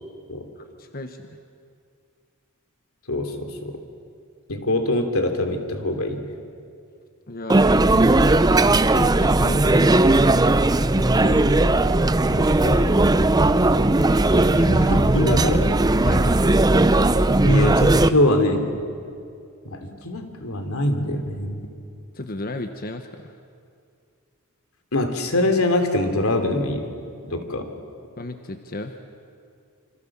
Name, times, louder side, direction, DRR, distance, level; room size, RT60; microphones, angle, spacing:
voice 1, 0.6-1.4 7.3-10.3 12.3-13.0 16.0-16.5 22.1-23.4 28.2-28.9, left 1 dB, 45° left, 6 dB, 1.2 m, -34 dB
voice 2, 3.1-3.8 4.5-6.3 11.1-11.9 12.4-12.8 14.5-15.8 17.4-18.7 19.6-21.7 24.9-26.9 27.3-27.7, left 1 dB, 85° left, 5 dB, 3.1 m, -24 dB
sound 1, 7.5-18.1, right 2 dB, 20° right, 0.6 m, -17 dB
28.0 x 26.0 x 7.4 m, 2.4 s
head